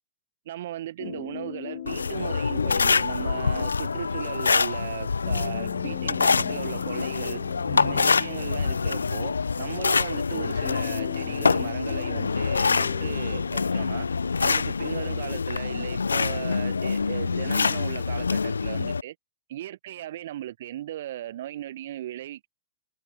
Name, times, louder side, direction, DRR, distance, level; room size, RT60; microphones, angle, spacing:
voice 1, 0.4-7.4 7.7-14.1 14.4-19.1 19.5-22.5, right 13 dB, 55° right, 1.4 m, -37 dB
sound 1, 1.0-14.8, left 18 dB, 45° left, 1.2 m, -39 dB
sound 2, 1.9-19.0, left 5 dB, 75° left, 0.9 m, -26 dB
figure-of-eight pair, 105°, 0 cm